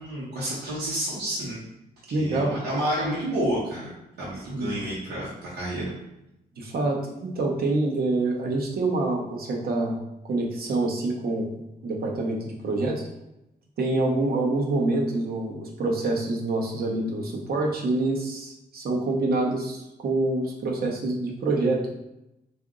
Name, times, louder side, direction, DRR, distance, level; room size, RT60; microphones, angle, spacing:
voice 1, 0.0-1.6 2.1-5.9, right 1 dB, 90° right, -8 dB, 1.1 m, -30 dB
voice 2, 2.1-2.5 4.5-4.7 6.6-10.0 10.2-11.5 11.8-13.0 13.8-21.9, right 2 dB, 65° right, 0 dB, 0.9 m, -26 dB
3.8 x 2.6 x 3.7 m, 0.88 s
cardioid pair, 110°, 17 cm